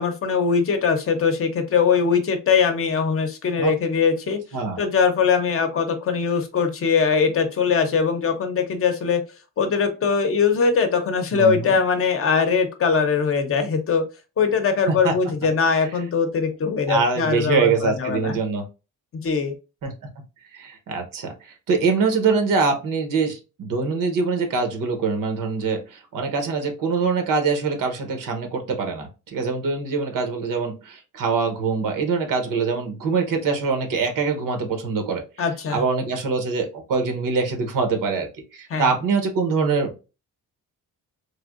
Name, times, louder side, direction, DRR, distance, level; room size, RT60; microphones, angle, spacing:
voice 1, 0.0-4.4 4.8-9.2 9.6-14.0 14.4-18.4 19.1-19.5 35.4-35.8 38.7-38.9, left 5 dB, 45° left, 6 dB, 0.6 m, -21 dB
voice 2, 11.3-11.8 14.9-15.1 16.9-18.6 19.8-19.9 20.5-35.2 35.7-40.0, right 4 dB, 80° right, 5 dB, 0.9 m, -24 dB
3.3 x 2.6 x 2.4 m, 0.30 s
cardioid pair, 140°, 32 cm